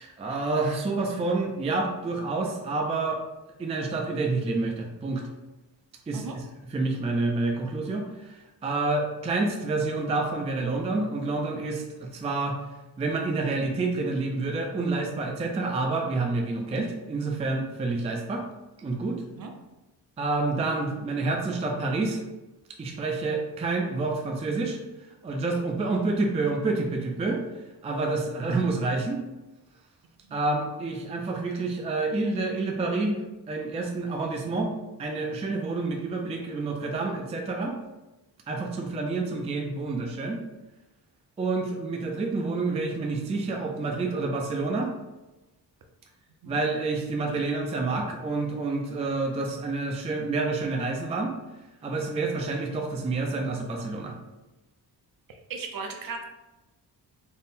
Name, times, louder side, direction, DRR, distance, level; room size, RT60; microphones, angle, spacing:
voice 1, 0.0-3.2 3.6-5.2 6.1-6.2 6.7-12.6 13.0-18.5 18.8-19.2 20.2-22.2 22.8-24.8 25.2-27.4 27.8-29.2 30.3-34.7 35.0-37.8 38.5-40.4 41.4-44.9 46.5-51.3 51.8-54.1, right 3 dB, 15° right, 1 dB, 0.3 m, -28 dB
voice 2, 55.3-56.2, right 4 dB, 55° right, 3 dB, 0.6 m, -37 dB
3.6 x 2.1 x 4.1 m, 1.1 s
wide cardioid pair, 130°, 41 cm